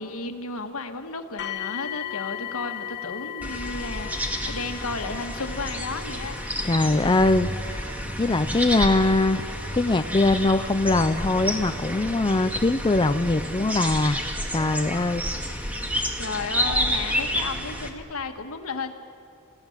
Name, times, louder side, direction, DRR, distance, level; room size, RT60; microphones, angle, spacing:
voice 1, 0.0-6.4 16.2-18.9, left 3 dB, 85° left, 6 dB, 1.6 m, -33 dB
sound 1, 1.4-14.3 15.1-15.2 15.8-15.9, left 12 dB, 55° left, 1.2 m, -39 dB
sound 2, 3.4-17.9, equal, 5° right, 2.0 m, -30 dB
voice 2, 6.6-7.9 8.2-9.4 9.8-14.2 14.5-15.2, left 2 dB, 20° left, 9 dB, 0.5 m, -22 dB
28.5 x 16.0 x 7.3 m, 2.6 s
head